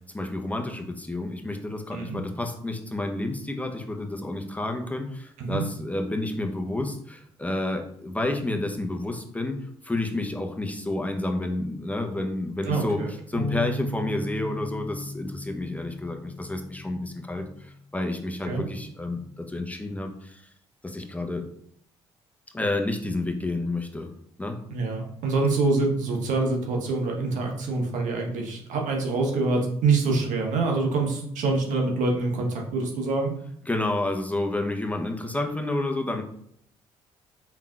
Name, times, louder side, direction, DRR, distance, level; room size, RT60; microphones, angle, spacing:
voice 1, 0.0-9.6 9.8-20.5 20.8-21.4 22.5-24.1 24.4-24.6 33.7-36.2, left 2 dB, 10° left, 3 dB, 0.8 m, -30 dB
voice 2, 12.7-13.1 18.5-18.6 24.7-33.3, right 3 dB, 70° right, 1 dB, 1.1 m, -25 dB
Bass guitar, 13.3-17.8 18.4-19.6, left 1 dB, 20° right, 1.6 m, -37 dB
4.5 x 3.7 x 2.4 m, 0.68 s
hypercardioid pair, 50°, 13 cm